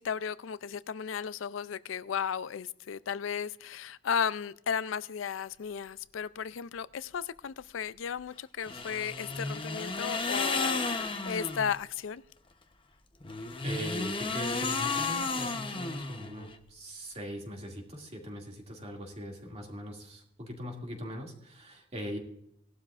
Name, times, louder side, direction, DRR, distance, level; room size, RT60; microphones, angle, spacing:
voice 1, 0.0-12.2, left 7 dB, 85° left, 0.4 m, -35 dB
sound 1, 8.6-11.8 13.2-16.6, left 3 dB, 25° left, 0.9 m, -33 dB
voice 2, 13.6-22.2, equal, 35° right, 2.4 m, -40 dB
18.0 x 12.0 x 2.5 m
head